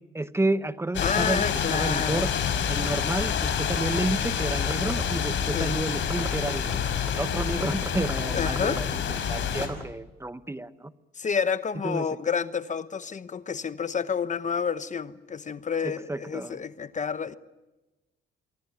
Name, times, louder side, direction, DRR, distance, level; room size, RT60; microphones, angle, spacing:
voice 1, 0.1-1.5 1.7-2.3 2.7-9.0 9.3-10.9 11.8-12.1 15.8-16.6, right 2 dB, 15° right, 1.1 m, -30 dB
sound 1, 0.9-9.7, left 8 dB, 75° left, 4.5 m, -28 dB
voice 2, 1.0-2.3 5.5-5.7 8.3-8.8 11.2-17.3, left 6 dB, 40° left, 1.0 m, -29 dB
24.0 x 24.0 x 9.3 m
cardioid pair, 90°, 20 cm